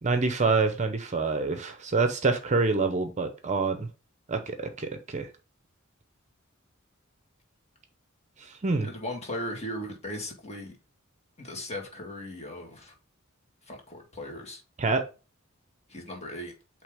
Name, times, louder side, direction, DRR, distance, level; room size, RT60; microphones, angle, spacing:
voice 1, 0.0-3.9 4.3-5.3 8.6-8.9 14.8-15.0, right 4 dB, 35° right, 0.7 m, -26 dB
voice 2, 8.8-10.7 11.4-12.9 13.7-14.6 15.9-16.5, left 1 dB, 30° left, 1.8 m, -37 dB
8.3 x 3.3 x 3.5 m
head